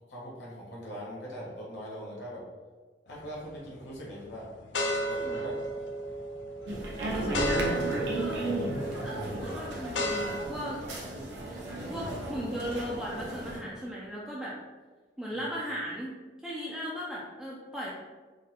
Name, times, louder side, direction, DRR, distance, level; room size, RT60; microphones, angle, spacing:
voice 1, 0.1-2.4 3.0-4.5 5.1-5.6 7.0-7.8 8.7-8.9 15.4-15.5, equal, 65° left, -5 dB, 1.2 m, -41 dB
sound 1, 3.1-3.6 4.1-10.5, equal, 85° left, 0.4 m, -34 dB
sound 2, 6.7-13.6, right 1 dB, 70° right, 0.7 m, -34 dB
voice 2, 7.1-7.7 8.1-8.5 8.9-11.0 11.9-14.6 15.2-17.9, equal, 5° right, -6 dB, 0.3 m, -37 dB
3.7 x 2.1 x 2.9 m, 1.4 s
head